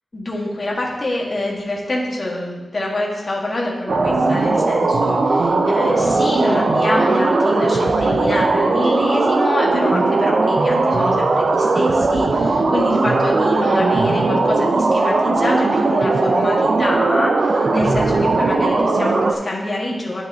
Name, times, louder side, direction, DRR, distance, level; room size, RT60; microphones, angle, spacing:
voice 1, 0.1-20.2, left 1 dB, 35° left, -4 dB, 1.6 m, -26 dB
sound 1, 3.9-19.3, right 3 dB, 60° right, 0.6 m, -18 dB
11.5 x 6.2 x 2.8 m, 1.2 s
wide cardioid pair, 135°, 0 cm